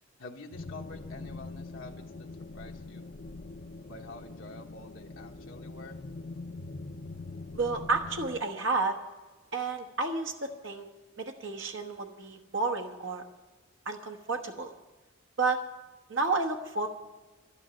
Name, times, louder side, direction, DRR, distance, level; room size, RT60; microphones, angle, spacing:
voice 1, 0.2-2.3 2.5-3.0 3.9-6.0, left 2 dB, 85° left, 0 dB, 1.3 m, -47 dB
sound 1, 0.5-8.4, left 3 dB, 50° left, 0.6 m, -43 dB
voice 2, 7.5-9.0 9.5-10.9 11.2-13.2 13.9-14.7 15.4-15.6 16.1-16.9, right 3 dB, 70° right, 2 dB, 1.1 m, -31 dB
12.0 x 8.9 x 9.0 m, 1.2 s
head